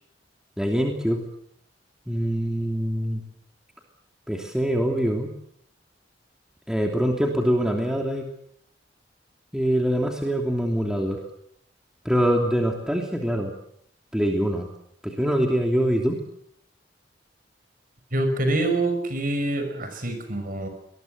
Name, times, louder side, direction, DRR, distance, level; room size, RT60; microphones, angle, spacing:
voice 1, 0.6-1.2 2.1-3.2 4.3-5.3 6.7-8.3 9.5-11.2 12.0-13.5 14.1-14.7 15.0-16.2, equal, 5° right, 1 dB, 3.0 m, -24 dB
voice 2, 18.1-20.7, right 2 dB, 50° right, 7 dB, 5.8 m, -25 dB
25.0 x 21.0 x 8.0 m, 0.70 s
head